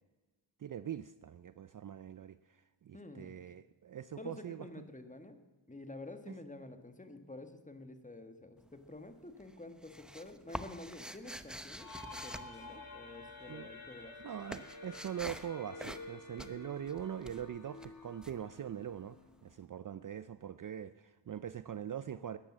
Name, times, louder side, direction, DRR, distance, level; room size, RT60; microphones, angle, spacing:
voice 1, 0.6-4.7 6.3-6.4 13.5-13.7 14.2-22.4, right 9 dB, 45° right, 14 dB, 0.5 m, -43 dB
voice 2, 2.9-3.3 4.2-5.4 5.7-14.2 16.3-16.5, left 2 dB, 15° left, 8 dB, 1.6 m, -49 dB
sound 1, 8.6-9.1 9.4-13.5 13.7-19.3, equal, ahead, 0.8 m, -47 dB
sound 2, 11.8-19.4, left 2 dB, 45° left, 2.5 m, -51 dB
13.5 x 10.5 x 7.4 m, 1.2 s
cardioid pair, 60°, 48 cm